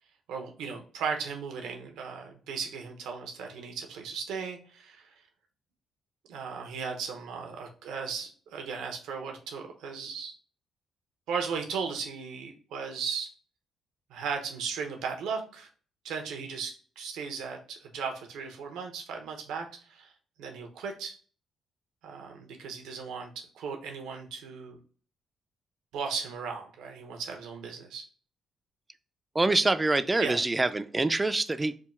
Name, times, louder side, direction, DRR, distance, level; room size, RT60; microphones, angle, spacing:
voice 1, 0.3-5.1 6.3-10.3 11.3-13.3 14.1-15.7 16.0-20.1 20.4-21.1 22.0-24.8 25.9-28.0 30.2-30.4, right 5 dB, 90° right, 3 dB, 0.8 m, -36 dB
voice 2, 29.3-31.8, right 2 dB, 20° right, 12 dB, 0.3 m, -25 dB
3.7 x 2.3 x 4.2 m, 0.43 s
cardioid pair, 90°, 0 cm